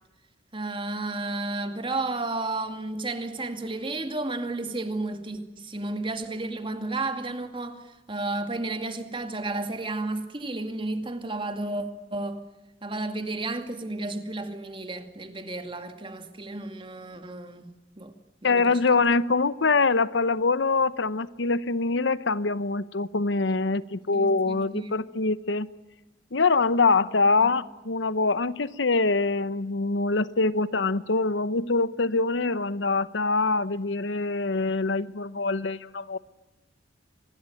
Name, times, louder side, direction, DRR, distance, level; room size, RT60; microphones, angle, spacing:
voice 1, 0.5-11.9 12.1-12.4 12.8-18.1 18.4-18.8 24.1-25.0 27.4-27.5, right 2 dB, 30° right, 2.3 m, -32 dB
voice 2, 18.4-25.7 26.3-36.2, left 3 dB, 85° left, 0.9 m, -24 dB
25.5 x 20.5 x 9.2 m
head